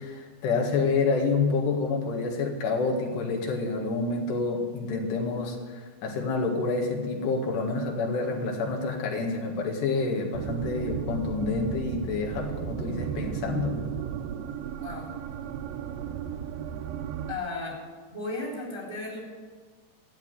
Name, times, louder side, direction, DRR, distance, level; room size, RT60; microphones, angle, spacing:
voice 1, 0.0-13.7, left 4 dB, 75° left, 0 dB, 3.9 m, -28 dB
sound 1, 10.3-17.3, right 9 dB, 80° right, 2.3 m, -34 dB
voice 2, 14.8-15.1 17.3-17.8 18.1-19.2, left 2 dB, 5° right, -2 dB, 2.9 m, -35 dB
13.5 x 9.6 x 9.5 m, 1.5 s
omnidirectional pair, 4.8 m